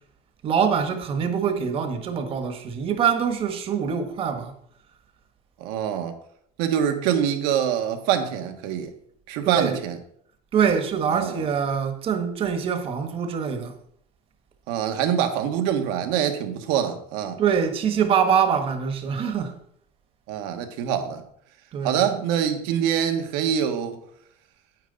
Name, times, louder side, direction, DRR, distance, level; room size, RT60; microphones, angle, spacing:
voice 1, 0.4-4.5 9.4-9.8 10.5-13.7 17.4-19.6 21.7-22.1, right 7 dB, 35° right, 1.3 m, -24 dB
voice 2, 5.6-6.1 6.6-8.9 9.3-10.0 11.1-11.5 14.7-17.4 20.3-21.2 21.8-24.0, right 9 dB, 70° right, 1.5 m, -25 dB
9.3 x 9.1 x 4.0 m
cardioid pair, 160°, 17 cm